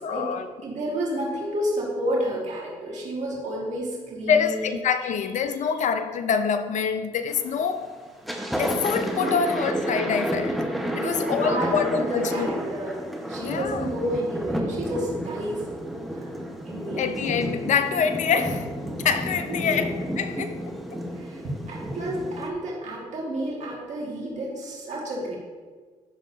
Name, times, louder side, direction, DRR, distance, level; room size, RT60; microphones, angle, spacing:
voice 1, 0.0-0.5 4.3-8.0 8.6-10.7 11.0-12.5 13.4-13.9 17.0-18.7 19.0-21.0, left 6 dB, 60° left, 10 dB, 0.7 m, -26 dB
voice 2, 0.6-4.7 9.2-9.4 10.9-15.7 16.1-16.3 16.7-17.1 19.5-19.8 21.1-25.4, right 1 dB, 60° right, -4 dB, 2.2 m, -30 dB
Thunder, 7.3-7.7 8.1-22.5, equal, ahead, 1.3 m, -31 dB
10.5 x 6.4 x 2.8 m, 1.5 s
supercardioid pair, 50°, 14 cm